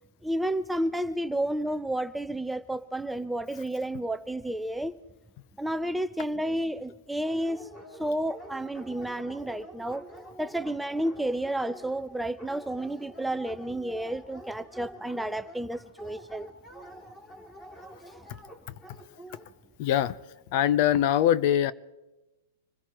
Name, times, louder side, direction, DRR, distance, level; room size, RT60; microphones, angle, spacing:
voice 1, 0.2-4.9 5.6-7.6 8.0-10.0 10.4-16.5, right 1 dB, 5° right, 0.5 m, -31 dB
Dog, 7.2-19.4, equal, 15° left, 3.0 m, -47 dB
voice 2, 19.8-20.2 20.5-21.7, left 11 dB, 45° left, 0.6 m, -22 dB
25.5 x 16.5 x 3.0 m
hypercardioid pair, 140°, 0 cm